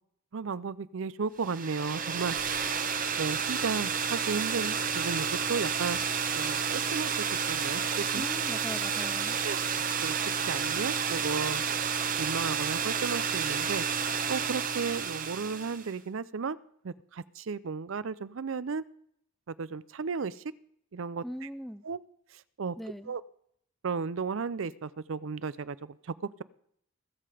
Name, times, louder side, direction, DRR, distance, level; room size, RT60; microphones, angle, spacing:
voice 1, 0.3-2.4 3.2-6.0 6.3-7.1 7.5-8.2 9.4-9.6 10.0-10.2 10.5-11.6 12.2-13.8 14.3-16.6 16.8-18.8 19.5-20.4 20.9-21.2 21.8-22.0 22.6-22.8 23.1-23.2 23.8-26.0, right 5 dB, 70° right, 19 dB, 0.5 m, -34 dB
sound 1, 1.4-15.9, right 6 dB, 40° right, 0.9 m, -30 dB
voice 2, 8.1-9.4 21.2-21.8 22.8-23.1, equal, ahead, 13 dB, 0.4 m, -40 dB
21.0 x 7.7 x 4.9 m, 0.69 s
head